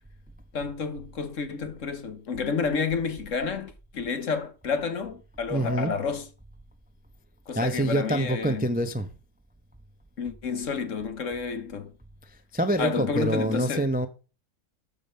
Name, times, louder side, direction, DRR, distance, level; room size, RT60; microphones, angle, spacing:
voice 1, 0.5-6.3 7.5-8.7 10.2-11.9 12.8-13.9, left 5 dB, 50° left, 1.4 m, -30 dB
voice 2, 5.5-5.9 7.6-9.1 12.5-14.1, right 1 dB, 10° right, 0.4 m, -26 dB
13.5 x 5.3 x 5.6 m
omnidirectional pair, 1.8 m